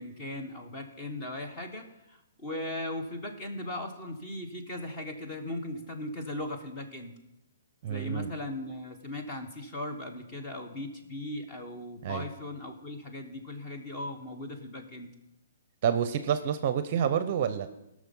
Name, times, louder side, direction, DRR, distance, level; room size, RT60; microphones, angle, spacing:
voice 1, 0.0-7.1 7.8-15.1, left 1 dB, 20° left, 4 dB, 1.3 m, -38 dB
voice 2, 7.8-8.3 12.0-12.2 15.8-17.7, right 8 dB, 35° right, 11 dB, 0.6 m, -28 dB
17.0 x 6.3 x 5.4 m, 0.90 s
hypercardioid pair, 165°, 0 cm